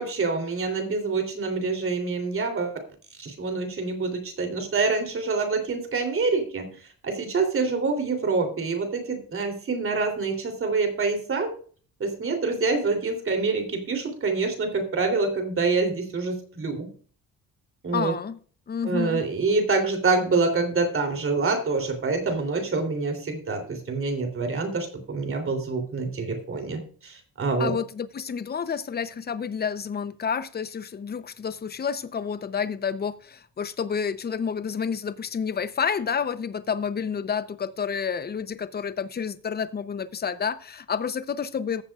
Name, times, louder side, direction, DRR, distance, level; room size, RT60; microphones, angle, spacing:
voice 1, 0.0-2.8 3.2-6.7 7.0-11.5 12.0-16.9 17.8-18.1 18.8-27.7, right 4 dB, 45° right, 3.2 m, -26 dB
voice 2, 17.9-18.4 18.7-19.2 27.6-41.8, left 6 dB, 30° left, 0.7 m, -29 dB
14.5 x 7.8 x 2.4 m
cardioid pair, 90°, 30 cm